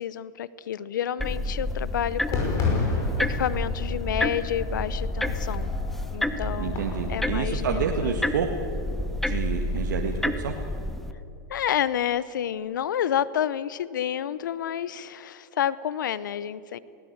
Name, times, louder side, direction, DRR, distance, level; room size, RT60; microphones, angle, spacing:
voice 1, 0.0-2.6 3.3-5.7 6.1-8.2 11.5-16.8, left 10 dB, 85° left, 18 dB, 0.8 m, -29 dB
sound 1, 1.2-11.1, left 1 dB, 5° left, 0.9 m, -30 dB
Fireworks, 2.3-7.4, left 3 dB, 35° left, 5.6 m, -31 dB
voice 2, 6.6-8.5 9.2-10.5, right 6 dB, 85° right, 2 dB, 1.8 m, -29 dB
20.0 x 18.0 x 8.0 m, 2.6 s
supercardioid pair, 135°, 10 cm